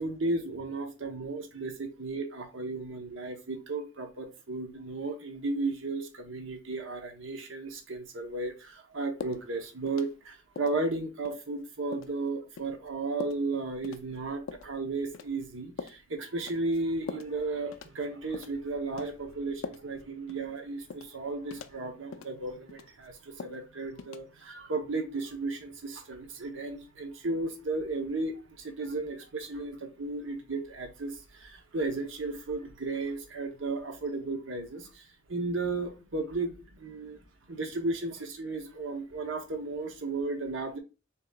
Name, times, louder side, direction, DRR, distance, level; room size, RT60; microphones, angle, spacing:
voice 1, 0.0-35.0 35.3-37.2 37.5-40.8, right 3 dB, 80° right, 0.9 m, -34 dB
sound 1, 9.2-9.4 9.9-10.3 10.6-10.8 11.3-11.4 11.9-12.2 12.6-12.7 13.2-13.4 13.8-14.0 14.5-14.7 15.1-15.5 15.8-16.0 16.5-16.8 17.1-17.3 17.7-18.1 18.3-18.6 19.0-19.1 19.6-20.0 20.3-20.4 20.9-21.1 21.5-21.8 22.1-22.3 22.7-23.1 23.4-23.6 24.0-24.2, left 5 dB, 85° left, 0.4 m, -42 dB
6.8 x 2.9 x 2.3 m
head